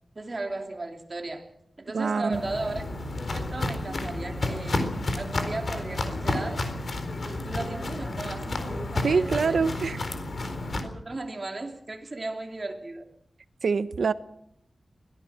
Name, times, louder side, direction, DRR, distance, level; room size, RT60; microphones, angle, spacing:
voice 1, 0.1-1.5 1.8-2.9 3.3-6.8 7.2-9.7 10.7-13.1, right 2 dB, 35° right, 2.9 m, -36 dB
voice 2, 1.9-2.4 9.0-10.0 13.6-14.1, right 5 dB, 75° right, 1.0 m, -25 dB
Walk footsteps, 2.3-10.8, left 2 dB, 50° left, 4.1 m, -31 dB
23.0 x 17.0 x 7.3 m
wide cardioid pair, 135°, 0 cm